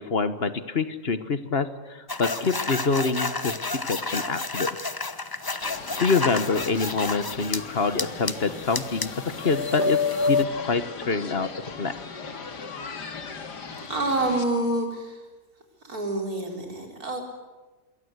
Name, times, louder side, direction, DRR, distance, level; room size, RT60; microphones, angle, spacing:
voice 1, 0.0-4.7 6.0-9.1 9.4-10.0 10.3-11.5 11.8-11.9, left 4 dB, 40° left, 12 dB, 1.3 m, -26 dB
sound 1, 2.1-7.6 8.0-10.4, left 3 dB, 20° left, 0.7 m, -29 dB
sound 2, 5.6-14.4, left 4 dB, 90° left, 2.6 m, -38 dB
voice 2, 13.9-15.2 15.8-17.2, right 2 dB, 65° right, 2 dB, 5.0 m, -27 dB
27.0 x 22.5 x 8.1 m, 1.2 s
omnidirectional pair, 1.7 m